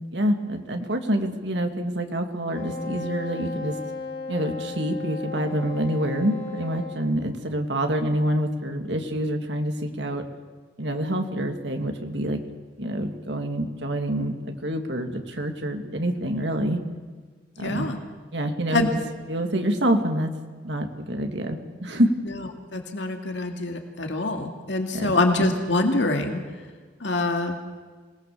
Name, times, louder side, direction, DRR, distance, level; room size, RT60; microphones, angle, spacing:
voice 1, 0.1-3.8 4.3-10.2 10.8-12.4 12.8-16.8 17.6-17.9 18.3-19.0 19.3-20.3 20.6-22.1 24.9-25.2, right 1 dB, 65° right, 5 dB, 2.4 m, -26 dB
Wind instrument woodwind instrument, 2.5-7.0, left 4 dB, 50° left, 4.0 m, -35 dB
voice 2, 17.6-18.0 18.7-18.9 22.7-26.4 27.0-27.5, left 2 dB, 70° left, 4 dB, 2.3 m, -25 dB
26.5 x 19.0 x 7.0 m, 1.5 s
head